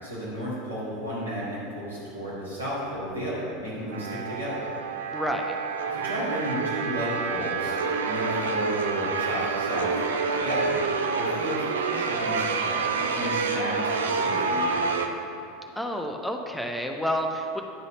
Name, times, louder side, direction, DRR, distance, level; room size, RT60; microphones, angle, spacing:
voice 1, 0.0-4.6 5.9-7.8 8.0-9.9 10.3-10.8 11.2-14.9, equal, 90° right, -10 dB, 2.1 m, -33 dB
sound 1, 3.9-15.1, right 4 dB, 70° right, 0.5 m, -28 dB
voice 2, 5.1-5.5 15.8-17.6, equal, ahead, 3 dB, 0.7 m, -29 dB
10.0 x 4.0 x 6.3 m, 2.5 s
figure-of-eight pair, 80°, 0 cm